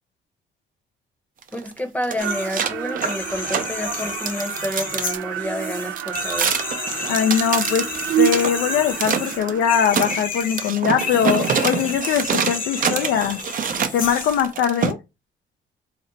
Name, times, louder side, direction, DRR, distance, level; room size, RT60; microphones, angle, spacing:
sound 1, 1.4-5.2 6.0-8.5 8.9-9.5 9.8-14.9, right 7 dB, 45° right, 0.6 m, -26 dB
voice 1, 1.5-6.6, equal, 5° left, 0.8 m, -29 dB
sound 2, 2.2-2.5 2.9-14.5, left 5 dB, 45° left, 0.9 m, -31 dB
sound 3, 2.2-10.2, right 10 dB, 85° right, 0.4 m, -29 dB
voice 2, 7.1-7.9 8.2-13.4 13.9-15.0, left 8 dB, 70° left, 0.4 m, -21 dB
4.1 x 2.1 x 3.9 m
cardioid pair, 90°, 20 cm